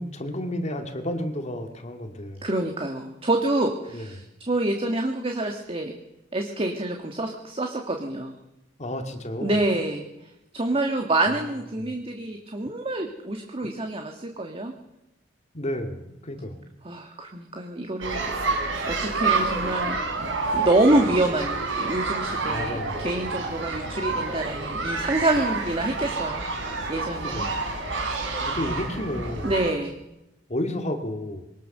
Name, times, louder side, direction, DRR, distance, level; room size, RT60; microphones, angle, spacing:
voice 1, 0.0-2.5 3.9-4.1 8.8-9.6 11.8-12.0 15.5-16.6 22.5-23.0 27.2-27.6 28.4-29.5 30.5-31.5, left 1 dB, 35° left, 5 dB, 2.1 m, -31 dB
voice 2, 2.4-6.0 6.3-8.4 9.4-14.7 16.8-20.0 20.5-26.5 26.9-27.5 29.4-30.0, right 2 dB, 30° right, 3 dB, 1.8 m, -27 dB
sound 1, 18.0-29.7, right 3 dB, 75° right, 4.6 m, -28 dB
23.0 x 19.0 x 6.7 m, 0.92 s
head